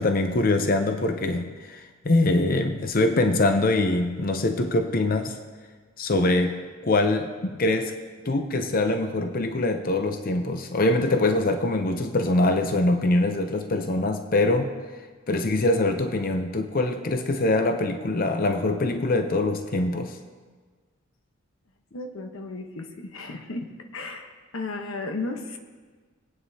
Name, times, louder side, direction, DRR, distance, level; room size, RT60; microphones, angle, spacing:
voice 1, 0.0-5.4 6.0-7.9 8.2-14.7 15.3-20.2, left 2 dB, 45° left, 6 dB, 0.7 m, -23 dB
voice 2, 21.9-25.6, left 3 dB, 80° left, 4 dB, 1.1 m, -34 dB
22.0 x 9.1 x 2.8 m, 1.5 s
head